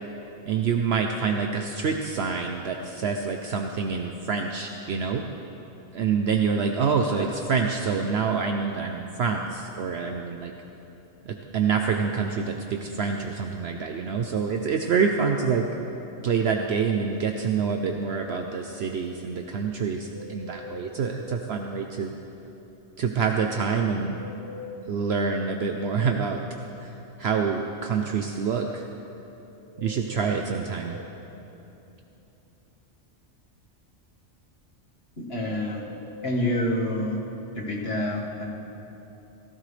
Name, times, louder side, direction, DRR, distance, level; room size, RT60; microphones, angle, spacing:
voice 1, 0.5-5.2 5.9-10.5 11.3-15.7 16.2-22.1 23.0-24.2 24.9-26.4 26.8-26.9 27.2-28.8 29.8-31.0, right 5 dB, 65° right, 4 dB, 0.9 m, -26 dB
sound 1, 20.1-21.5 24.1-25.5 29.7-31.1 35.7-37.1, left 2 dB, 15° right, 0.8 m, -43 dB
voice 2, 35.2-35.8 36.2-37.2 37.6-38.5, left 1 dB, 55° left, -4 dB, 2.1 m, -27 dB
17.0 x 15.0 x 3.3 m, 3.0 s
omnidirectional pair, 1.3 m